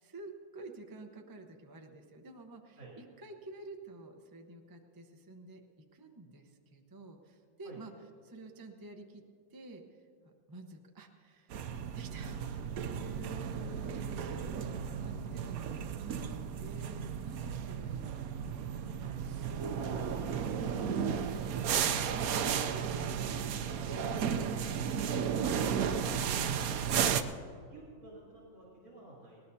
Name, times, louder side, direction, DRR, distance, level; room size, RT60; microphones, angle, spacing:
voice 1, 0.0-5.6 5.9-9.2 9.5-9.8 10.2-11.6 11.9-12.4 12.8-20.5 22.1-25.0, right 2 dB, 20° right, 3 dB, 0.5 m, -50 dB
sound 1, 11.5-27.2, right 7 dB, 65° right, 0.9 m, -34 dB
voice 2, 19.7-20.5 27.7-29.4, right 2 dB, 50° right, -7 dB, 3.8 m, -52 dB
19.5 x 19.5 x 2.8 m, 2.3 s
omnidirectional pair, 2.1 m